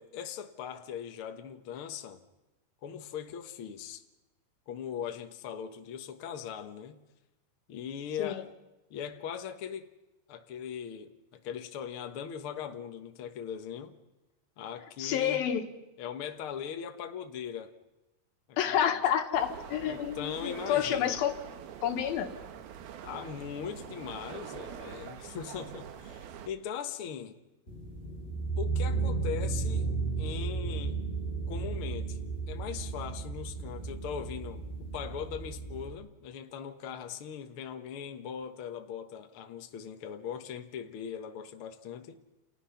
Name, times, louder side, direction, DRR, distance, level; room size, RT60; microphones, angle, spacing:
voice 1, 0.0-2.2 2.8-4.0 4.7-7.0 7.7-8.5 8.9-9.9 10.3-13.9 14.6-15.5 16.0-17.7 18.5-19.0 19.8-21.2 23.0-27.4 28.6-29.9 30.2-31.0 31.5-32.2 32.5-42.2, left 8 dB, 60° left, 1.5 m, -40 dB
voice 2, 15.0-15.6 18.6-21.3 21.8-22.3, left 9 dB, 80° left, 3.2 m, -29 dB
sound 1, 19.3-26.5, right 9 dB, 80° right, 3.1 m, -45 dB
sound 2, 27.7-35.9, right 4 dB, 15° left, 3.1 m, -34 dB
29.5 x 29.0 x 5.8 m
omnidirectional pair, 4.2 m